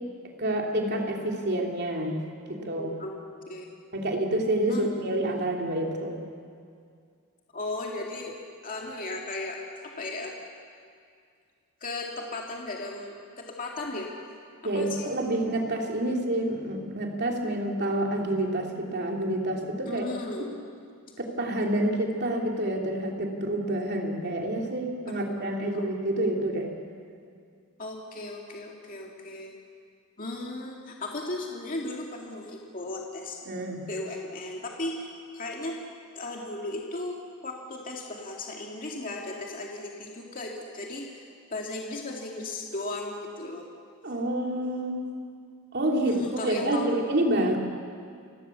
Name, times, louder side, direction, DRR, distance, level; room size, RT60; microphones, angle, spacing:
voice 1, 0.4-2.2 2.5-2.9 3.9-6.2 14.6-20.0 20.4-20.5 21.2-26.7 33.5-33.8 44.0-45.1 45.7-47.6, right 1 dB, 50° right, 1 dB, 3.0 m, -28 dB
voice 2, 2.8-3.7 4.7-5.0 7.5-8.3 8.6-10.3 11.8-14.1 14.7-15.1 19.9-20.5 25.1-25.4 25.7-25.9 27.8-29.5 30.2-33.4 33.9-35.8 36.2-37.2 37.4-43.7 46.1-47.0, left 2 dB, 40° left, -1 dB, 2.3 m, -36 dB
29.5 x 17.0 x 7.0 m, 2.2 s
head